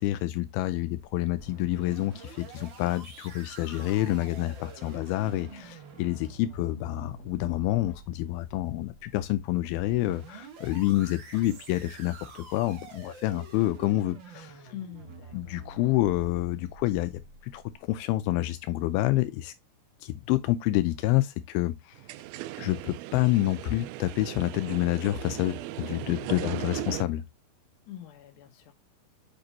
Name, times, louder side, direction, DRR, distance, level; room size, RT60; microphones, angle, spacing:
voice 1, 0.0-14.7 15.3-17.1 17.4-19.5 20.0-22.0 22.6-27.2, left 16 dB, 85° left, 2.4 m, -28 dB
sound 1, 1.2-17.8, right 4 dB, 60° right, 1.3 m, -48 dB
voice 2, 14.7-15.4 26.4-26.7 27.9-28.7, left 11 dB, 65° left, 2.4 m, -44 dB
sound 2, 21.9-27.0, right 16 dB, 85° right, 2.4 m, -38 dB
6.8 x 5.2 x 2.8 m
omnidirectional pair, 4.3 m